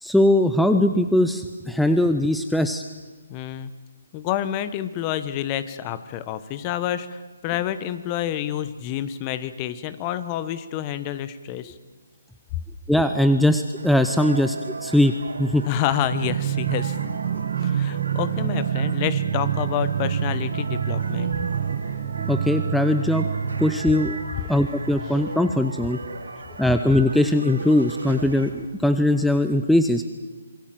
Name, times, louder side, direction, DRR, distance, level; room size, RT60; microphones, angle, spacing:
voice 1, 0.0-2.8 12.9-14.6 14.8-15.1 15.4-15.7 22.2-23.3 23.6-24.2 24.5-26.0 26.6-30.0, left 1 dB, ahead, 8 dB, 0.8 m, -20 dB
voice 2, 3.3-3.7 4.1-11.8 15.7-17.0 17.6-21.3 25.0-25.2, left 11 dB, 25° left, 14 dB, 1.2 m, -28 dB
sound 1, 13.8-28.5, right 3 dB, 80° right, 5.1 m, -37 dB
sound 2, 16.1-24.4, right 8 dB, 45° right, 1.2 m, -27 dB
26.0 x 21.5 x 7.8 m, 1.3 s
hypercardioid pair, 150°, 0 cm